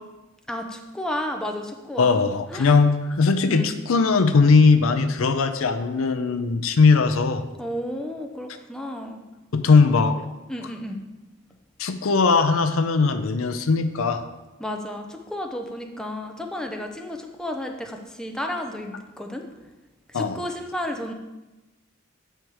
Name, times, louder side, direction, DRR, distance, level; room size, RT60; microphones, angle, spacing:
voice 1, 0.5-2.2 2.5-2.8 3.5-3.7 7.6-9.2 10.5-11.0 14.6-19.4 20.1-21.1, left 1 dB, 5° left, 3 dB, 0.5 m, -32 dB
voice 2, 2.0-7.4 9.5-10.2 11.8-14.2 20.1-20.3, left 4 dB, 70° left, 9 dB, 0.5 m, -19 dB
8.0 x 4.5 x 4.7 m, 1.1 s
head